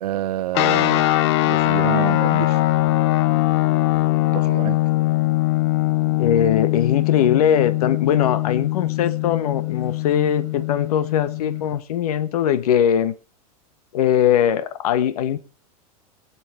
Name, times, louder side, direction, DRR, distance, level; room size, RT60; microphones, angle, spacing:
voice 1, 0.0-2.6 4.3-4.8, right 13 dB, 90° right, 0.8 m, -28 dB
sound 1, 0.5-11.7, left 17 dB, 45° left, 0.8 m, -21 dB
voice 2, 6.2-13.1 13.9-15.4, left 9 dB, 75° left, 1.3 m, -20 dB
21.0 x 7.6 x 4.4 m
supercardioid pair, 175°, 20 cm